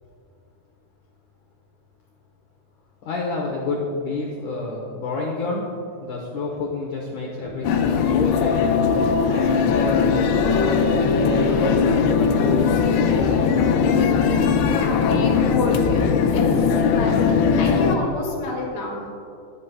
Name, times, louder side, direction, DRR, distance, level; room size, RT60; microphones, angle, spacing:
voice 1, 3.0-5.6 6.0-8.8 9.3-12.9, left 3 dB, 65° left, -2 dB, 2.0 m, -29 dB
sound 1, 7.6-18.0, left 6 dB, 85° left, 2.8 m, -19 dB
sound 2, 10.0-13.6, right 3 dB, 60° right, 1.8 m, -35 dB
voice 2, 14.9-16.5 16.9-19.2, left 2 dB, 30° left, -3 dB, 1.7 m, -29 dB
22.0 x 8.4 x 2.3 m, 2.6 s
omnidirectional pair, 4.7 m